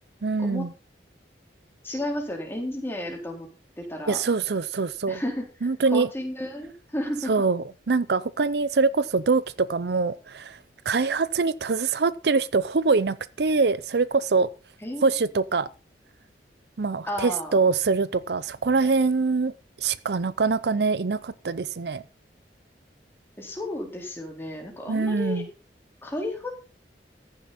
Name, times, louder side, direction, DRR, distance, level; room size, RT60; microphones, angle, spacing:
voice 1, 0.2-0.7 4.1-5.2 5.6-6.1 7.3-10.6 10.9-14.5 15.0-15.7 16.8-19.5 19.8-22.0 24.9-25.5, right 4 dB, 65° right, 0.6 m, -24 dB
voice 2, 1.8-3.5 3.8-4.2 5.1-7.3 14.8-15.1 17.1-17.6 23.4-25.4 26.0-26.7, left 1 dB, 15° left, 4.2 m, -32 dB
15.0 x 10.5 x 4.2 m
head